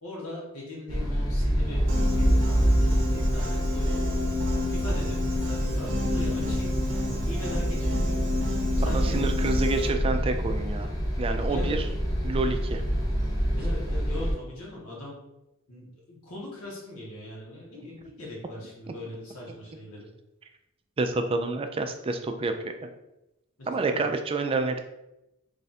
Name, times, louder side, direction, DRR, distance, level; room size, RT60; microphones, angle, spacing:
voice 1, 0.0-4.2 4.7-8.2 8.7-9.2 11.5-11.8 13.5-15.2 15.7-20.1 23.7-24.0, left 2 dB, 80° left, -4 dB, 1.4 m, -40 dB
sound 1, 0.9-14.3, equal, 20° left, 0.8 m, -26 dB
Piano, 1.9-9.9, left 3 dB, 60° right, 0.6 m, -32 dB
voice 2, 8.8-10.9 11.2-11.8 12.2-12.8 21.0-22.9 23.7-24.8, right 3 dB, 25° right, 6 dB, 0.3 m, -28 dB
3.2 x 2.5 x 4.1 m, 0.91 s
head